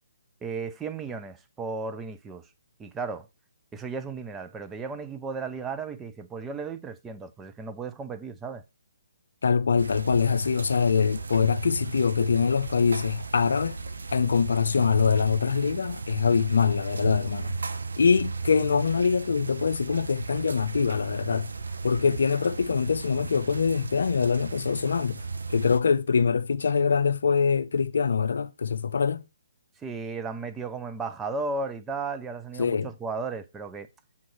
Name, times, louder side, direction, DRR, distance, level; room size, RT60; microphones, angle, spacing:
voice 1, 0.4-2.5 2.8-3.3 3.7-8.6 29.8-33.9, right 4 dB, 10° right, 0.5 m, -35 dB
voice 2, 9.4-13.8 14.1-17.6 18.0-21.5 21.8-25.2 25.5-29.3 32.6-32.9, left 6 dB, 70° left, 0.5 m, -24 dB
sound 1, 9.8-25.8, right 4 dB, 80° right, 0.7 m, -35 dB
7.2 x 3.1 x 6.1 m
hypercardioid pair, 145°, 0 cm